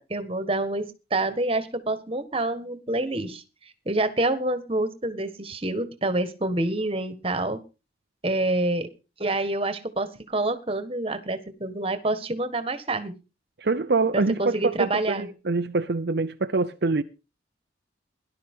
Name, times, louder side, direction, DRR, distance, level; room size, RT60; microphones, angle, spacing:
voice 1, 0.0-3.4 3.8-7.6 8.2-8.9 9.2-13.1 14.1-15.3, right 2 dB, 30° right, 1.5 m, -27 dB
voice 2, 13.6-17.0, right 3 dB, 60° right, 0.6 m, -25 dB
18.0 x 11.5 x 3.7 m
head